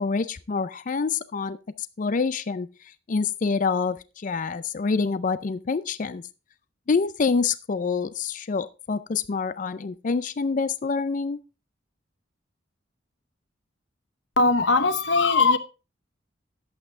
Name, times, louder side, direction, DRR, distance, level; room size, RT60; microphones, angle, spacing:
voice 1, 0.0-1.6 2.0-2.7 3.1-6.2 6.9-11.4, left 4 dB, 40° left, 0.4 m, -26 dB
voice 2, 14.4-15.6, left 3 dB, 65° left, 1.0 m, -20 dB
11.5 x 8.1 x 3.7 m
head